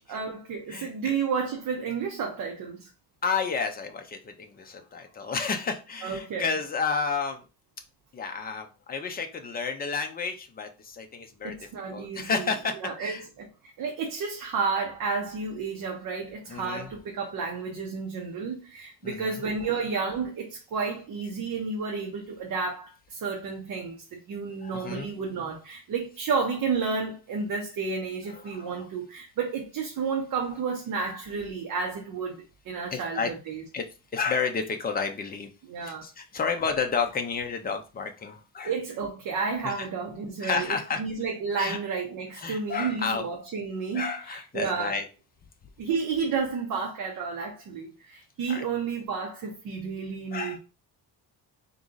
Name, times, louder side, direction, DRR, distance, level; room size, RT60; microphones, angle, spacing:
voice 1, 0.1-2.9 6.0-6.5 11.4-12.5 12.8-13.5 13.8-33.6 35.7-36.1 38.6-45.0 45.8-50.6, right 5 dB, 60° right, 0.9 m, -31 dB
voice 2, 0.7-1.2 3.2-7.4 8.1-11.6 11.9-13.2 16.5-16.9 19.0-19.4 24.6-25.1 28.4-28.8 32.9-33.3 33.7-33.8 34.1-35.5 35.8-38.7 39.6-39.7 40.4-41.0 41.5-41.8 42.4-43.2 43.9-45.1 48.5-48.6 50.3-50.6, left 5 dB, 25° left, 0.6 m, -31 dB
3.8 x 3.0 x 3.8 m
cardioid pair, 175°, 38 cm